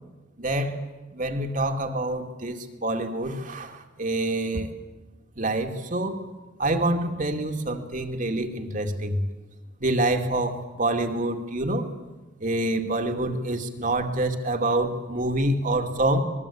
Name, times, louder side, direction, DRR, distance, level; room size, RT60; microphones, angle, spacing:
voice 1, 0.4-0.8 1.1-4.7 5.4-6.2 6.6-9.3 9.8-11.9 12.4-16.2, right 1 dB, 40° right, 5 dB, 2.4 m, -26 dB
26.0 x 21.0 x 8.7 m, 1.1 s
head